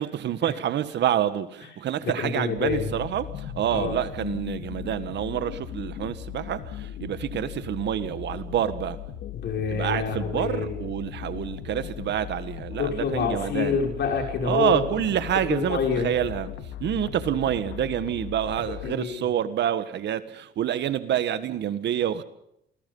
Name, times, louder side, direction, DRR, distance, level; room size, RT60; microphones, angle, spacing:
voice 1, 0.0-9.0 9.7-13.8 14.4-16.5 16.8-22.2, right 10 dB, 60° right, 1.6 m, -27 dB
voice 2, 2.2-2.9 3.7-3.9 9.3-10.8 12.8-14.8 15.5-16.1 18.7-19.3, left 6 dB, 60° left, 5.8 m, -27 dB
sound 1, 2.6-18.9, left 10 dB, 80° left, 2.2 m, -37 dB
28.0 x 20.0 x 5.5 m
cardioid pair, 110°, 20 cm